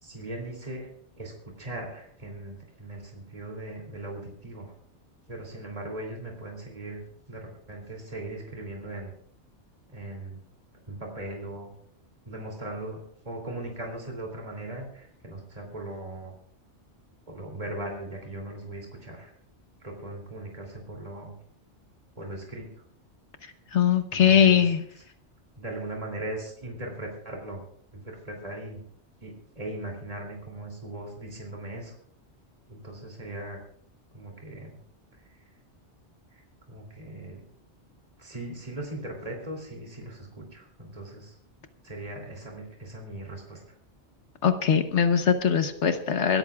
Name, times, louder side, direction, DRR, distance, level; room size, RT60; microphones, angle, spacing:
voice 1, 0.0-0.9 1.2-4.7 5.3-7.0 7.3-9.1 9.9-10.4 10.9-11.7 12.2-16.3 17.3-19.3 19.8-21.3 22.2-22.7 24.1-24.7 25.5-27.6 27.9-28.8 29.2-31.9 32.7-33.6 34.1-34.8 35.3-35.4 36.3-37.4 38.2-41.3 41.8-43.6, right 1 dB, 35° right, 0 dB, 3.0 m, -39 dB
voice 2, 23.7-24.8 44.4-46.4, left 8 dB, 80° left, 8 dB, 1.3 m, -21 dB
26.0 x 13.5 x 2.4 m, 0.65 s
omnidirectional pair, 1.2 m